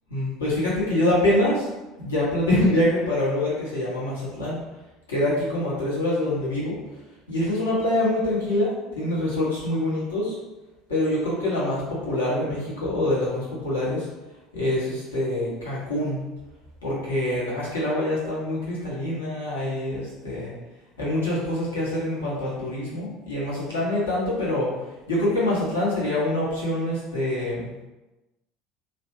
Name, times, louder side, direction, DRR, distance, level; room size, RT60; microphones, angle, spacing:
voice 1, 0.1-1.7 2.0-4.6 5.1-6.8 7.3-10.4 10.9-14.1 14.5-16.2 16.8-20.5 21.0-24.7 25.1-27.7, left 1 dB, 75° left, -7 dB, 1.0 m, -25 dB
2.9 x 2.1 x 3.0 m, 1.1 s
figure-of-eight pair, 65°, 0 cm